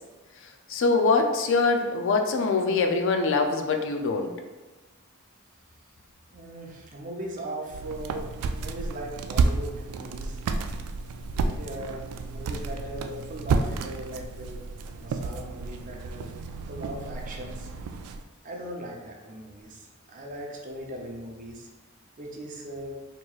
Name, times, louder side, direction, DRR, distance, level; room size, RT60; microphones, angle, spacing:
voice 1, 0.7-4.3, left 4 dB, 60° left, 4 dB, 0.4 m, -23 dB
voice 2, 6.3-10.4 11.3-14.6 15.0-16.3 16.7-17.7 18.4-21.7 22.2-23.0, right 1 dB, 35° right, 0 dB, 0.6 m, -39 dB
sound 1, 7.7-18.2, right 4 dB, 90° right, 0.3 m, -31 dB
4.4 x 3.0 x 2.3 m, 1.2 s
head